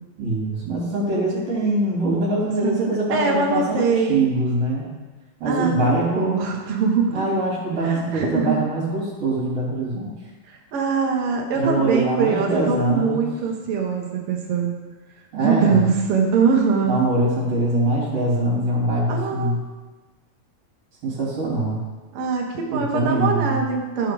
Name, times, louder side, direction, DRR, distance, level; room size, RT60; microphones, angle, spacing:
voice 1, 0.2-4.8 5.4-6.5 7.1-10.1 11.5-13.2 15.3-15.9 16.8-19.6 21.0-21.8 22.7-23.6, right 1 dB, 45° right, -5 dB, 4.0 m, -23 dB
voice 2, 2.6-4.2 5.4-7.2 7.8-8.6 10.5-14.7 15.4-17.0 19.1-19.6 22.1-24.1, right 5 dB, 85° right, 0 dB, 1.2 m, -22 dB
13.5 x 5.1 x 4.7 m, 1.2 s
omnidirectional pair, 4.4 m